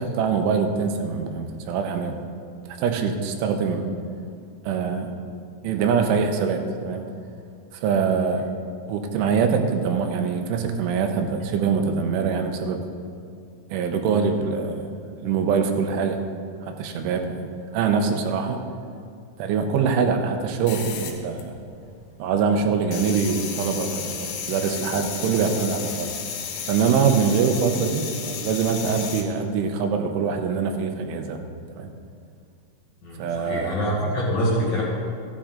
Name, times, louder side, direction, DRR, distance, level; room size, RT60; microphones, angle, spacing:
voice 1, 0.0-2.2 2.7-3.9 4.6-5.1 5.6-7.0 7.7-8.5 8.9-12.8 13.7-16.2 16.6-18.7 19.4-21.6 22.2-26.1 26.7-31.4 31.7-31.9 33.2-33.8, right 6 dB, 85° right, 5 dB, 3.3 m, -24 dB
sound 1, 20.6-21.9 22.2-29.2, left 7 dB, 85° left, 3.4 m, -33 dB
voice 2, 33.0-34.8, equal, 50° left, -6 dB, 2.9 m, -25 dB
14.5 x 9.9 x 3.8 m, 2.4 s
omnidirectional pair, 5.5 m